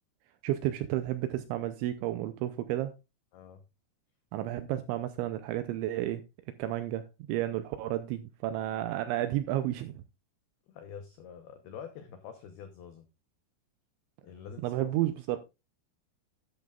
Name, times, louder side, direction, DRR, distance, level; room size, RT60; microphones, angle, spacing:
voice 1, 0.4-3.0 4.3-6.2 6.6-10.0 14.6-15.4, right 13 dB, 85° right, 2.7 m, -32 dB
voice 2, 3.3-3.6 10.7-13.1 14.2-15.0, left 7 dB, 90° left, 2.1 m, -46 dB
12.0 x 10.5 x 2.4 m
omnidirectional pair, 6.0 m